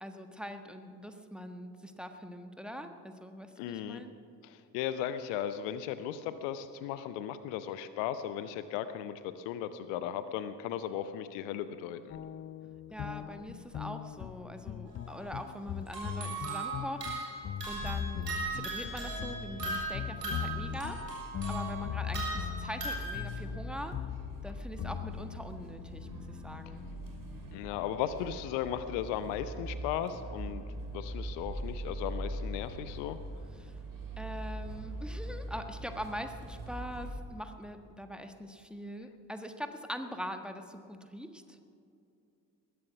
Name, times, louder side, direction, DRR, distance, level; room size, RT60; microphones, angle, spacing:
voice 1, 0.0-4.1 12.9-17.3 17.7-21.0 21.5-23.9 24.4-26.8 33.6-33.7 34.2-41.7, equal, ahead, 6 dB, 1.4 m, -43 dB
voice 2, 3.6-4.0 4.4-12.2 27.5-30.6 30.9-33.2, left 10 dB, 65° left, 12 dB, 0.8 m, -36 dB
sound 1, 12.1-27.7, left 10 dB, 30° left, 0.4 m, -41 dB
sound 2, 14.9-15.0 15.9-23.3, right 2 dB, 85° right, 2.7 m, -38 dB
sound 3, 17.6-37.1, right 1 dB, 45° right, 2.9 m, -42 dB
20.0 x 11.5 x 6.0 m, 2.6 s
figure-of-eight pair, 40°, 47 cm